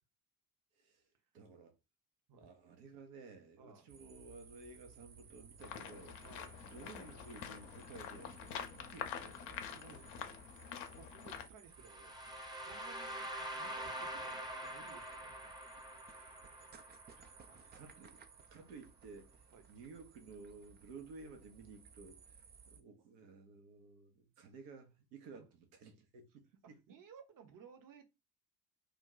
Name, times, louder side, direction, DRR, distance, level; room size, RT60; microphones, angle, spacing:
voice 1, 1.3-1.7 2.3-6.2 6.6-10.0 16.1-16.4 17.6-18.2 18.5-19.3 19.7-26.8, right 4 dB, 75° right, 0.9 m, -55 dB
voice 2, 3.6-3.9 6.2-6.6 9.6-10.4 10.6-15.4 15.6-16.6 17.2-17.8 19.5-19.7 25.3-25.4 26.9-28.0, right 6 dB, 45° right, 0.9 m, -60 dB
sound 1, 3.9-22.8, right 6 dB, 25° right, 0.3 m, -60 dB
sound 2, 5.6-11.5, left 8 dB, 65° left, 0.7 m, -46 dB
sound 3, 11.8-17.8, right 1 dB, 10° right, 0.7 m, -45 dB
2.5 x 2.2 x 3.8 m
hypercardioid pair, 50°, 48 cm